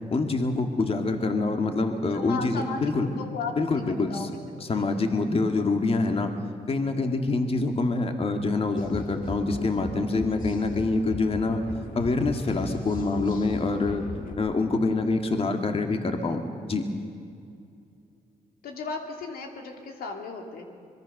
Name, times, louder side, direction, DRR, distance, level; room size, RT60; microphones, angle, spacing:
voice 1, 0.1-3.1 3.6-4.3 4.6-6.3 6.7-11.6 11.9-14.1 14.3-16.4 16.7-16.8, left 3 dB, 40° left, 5 dB, 2.1 m, -26 dB
voice 2, 2.1-5.0 18.6-20.6, left 4 dB, 85° left, 3 dB, 2.6 m, -36 dB
sound 1, 8.8-14.3, left 3 dB, 65° left, 2.4 m, -38 dB
24.0 x 22.0 x 6.6 m, 2.5 s
cardioid pair, 80°, 15 cm